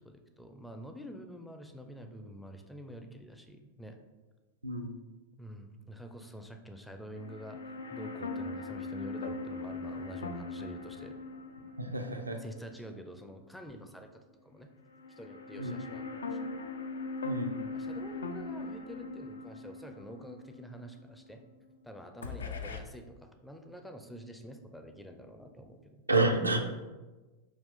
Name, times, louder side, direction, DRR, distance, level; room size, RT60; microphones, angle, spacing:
voice 1, 0.0-4.0 5.4-11.2 12.4-14.7 15.1-16.5 17.7-21.5 21.8-26.1, equal, 5° left, 5 dB, 0.4 m, -47 dB
voice 2, 4.6-4.9 11.8-12.4 15.6-15.8 17.2-17.6 26.1-26.9, right 2 dB, 80° right, 5 dB, 0.4 m, -30 dB
sound 1, 7.2-13.4 13.7-13.8 14.9-21.8 22.2-22.8, left 3 dB, 70° left, 0.3 m, -41 dB
4.9 x 2.4 x 3.7 m, 1.2 s
figure-of-eight pair, 90°, 0 cm